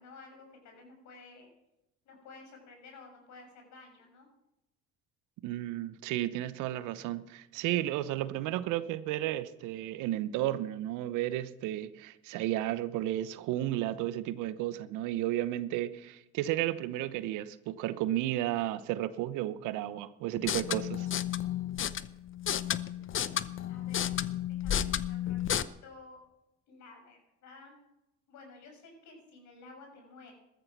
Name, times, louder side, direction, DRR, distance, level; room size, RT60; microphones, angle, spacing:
voice 1, 0.0-1.5 2.0-4.3 23.7-24.1 24.5-26.2 26.7-27.8 28.3-30.3, left 3 dB, 60° left, 3 dB, 6.2 m, -53 dB
voice 2, 5.4-21.1, right 14 dB, 70° right, 15 dB, 1.0 m, -33 dB
sound 1, 20.3-25.6, left 10 dB, 40° left, 0.8 m, -32 dB
14.0 x 13.5 x 5.9 m, 0.90 s
supercardioid pair, 70°, 32 cm